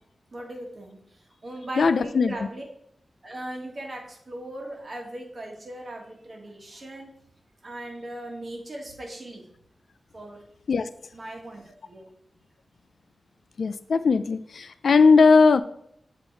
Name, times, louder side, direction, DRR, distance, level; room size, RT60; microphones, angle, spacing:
voice 1, 0.3-1.0 1.4-2.6 3.2-7.1 7.6-9.4 10.1-10.4 11.1-12.1, right 1 dB, 45° right, 0 dB, 1.5 m, -38 dB
voice 2, 1.8-2.3 10.7-10.9 13.6-15.6, left 4 dB, 75° left, 13 dB, 0.3 m, -18 dB
7.9 x 3.0 x 4.4 m, 0.70 s
wide cardioid pair, 110°, 0 cm